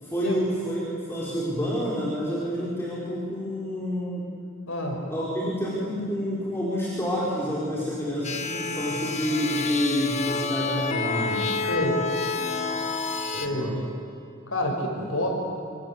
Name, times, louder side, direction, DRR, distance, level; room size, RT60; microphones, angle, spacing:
voice 1, 0.0-4.3 5.1-11.5 13.3-13.8 15.0-15.1, equal, 10° left, -6 dB, 4.6 m, -28 dB
voice 2, 4.7-5.0 11.6-12.0 13.3-13.7 14.5-15.3, left 1 dB, 90° left, 1 dB, 6.6 m, -28 dB
sound 1, 8.2-13.5, left 4 dB, 35° left, 1.8 m, -29 dB
26.5 x 26.5 x 8.0 m, 2.6 s
head